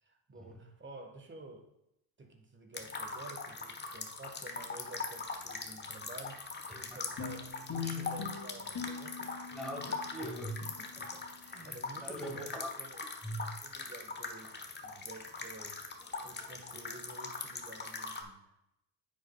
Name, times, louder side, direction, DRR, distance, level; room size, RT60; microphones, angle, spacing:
voice 1, 0.0-1.7 2.2-9.3 11.0-11.1 11.6-13.0 13.4-15.9 16.2-18.5, right 2 dB, 25° right, 5 dB, 1.4 m, -51 dB
sound 1, 2.7-18.2, left 4 dB, 20° left, 1.1 m, -42 dB
sound 2, 7.2-11.8, left 6 dB, 45° left, 2.6 m, -43 dB
voice 2, 9.5-12.7 13.2-13.5, equal, ahead, 0 dB, 2.0 m, -42 dB
9.6 x 7.0 x 2.3 m, 0.83 s
supercardioid pair, 75°, 48 cm